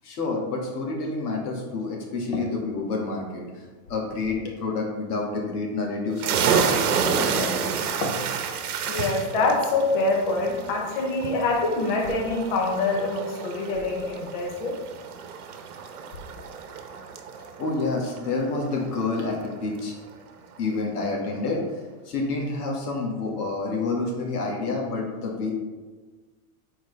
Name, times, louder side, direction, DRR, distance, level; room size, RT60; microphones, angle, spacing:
voice 1, 0.0-7.7 17.6-20.0 20.6-21.6 22.1-25.5, left 3 dB, 90° left, -1 dB, 1.9 m, -29 dB
sound 1, 6.2-19.5, right 6 dB, 75° right, 0.9 m, -30 dB
voice 2, 8.9-14.8, left 3 dB, 35° left, 0 dB, 0.7 m, -25 dB
6.8 x 4.4 x 3.3 m, 1.3 s
supercardioid pair, 180°, 44 cm